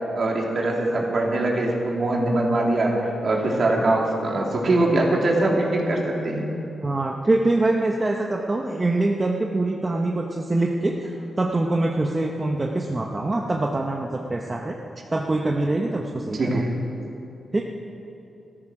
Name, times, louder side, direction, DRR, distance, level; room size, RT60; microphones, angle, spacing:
voice 1, 0.2-6.5 16.3-16.7, right 2 dB, 50° right, -1 dB, 2.8 m, -22 dB
voice 2, 6.8-14.8 15.1-16.6 17.5-17.6, right 2 dB, 25° right, 1 dB, 0.9 m, -24 dB
14.0 x 13.5 x 6.1 m, 2.9 s
cardioid pair, 105°, 0 cm